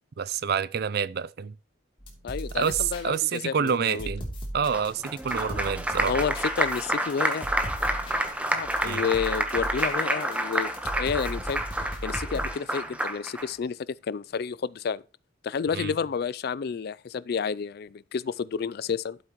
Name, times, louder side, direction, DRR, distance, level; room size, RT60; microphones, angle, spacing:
voice 1, 0.2-1.5 2.5-4.3 4.5-6.2 8.8-9.0 15.7-15.9, right 7 dB, 50° right, 0.4 m, -28 dB
sound 1, 2.0-3.4 3.7-12.5, equal, 25° left, 3.0 m, -38 dB
voice 2, 2.2-4.1 5.4-5.6 6.0-7.5 8.5-10.7 11.0-11.6 12.0-15.0 15.4-19.2, left 6 dB, 50° left, 0.3 m, -30 dB
Applause, 4.7-13.5, right 1 dB, 5° right, 1.0 m, -29 dB
12.5 x 7.9 x 3.0 m
head